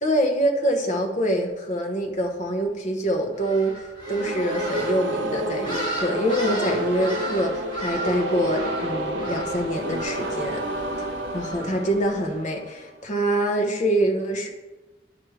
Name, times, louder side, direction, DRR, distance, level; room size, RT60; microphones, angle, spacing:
voice 1, 0.0-3.8 4.1-10.6 11.3-14.5, right 1 dB, 40° left, 2 dB, 1.0 m, -25 dB
sound 1, 3.3-12.4, right 1 dB, 25° left, 2.2 m, -36 dB
sound 2, 4.0-12.9, right 1 dB, 75° right, 0.8 m, -30 dB
10.5 x 4.9 x 3.2 m, 1.1 s
head